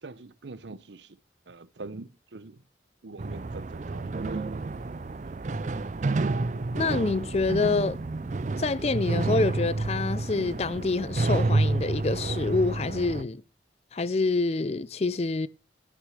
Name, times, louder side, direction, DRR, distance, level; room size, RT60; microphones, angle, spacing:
voice 1, 0.0-1.2 1.5-2.6 3.0-4.6 5.1-5.2, right 3 dB, 80° right, 0.8 m, -44 dB
sound 1, 3.2-13.2, right 2 dB, 40° right, 0.4 m, -29 dB
voice 2, 6.8-8.0 8.6-13.4 13.9-15.5, left 3 dB, 35° left, 0.4 m, -27 dB
sound 2, 7.0-12.6, right 1 dB, 5° left, 2.0 m, -49 dB
9.8 x 6.5 x 6.3 m
head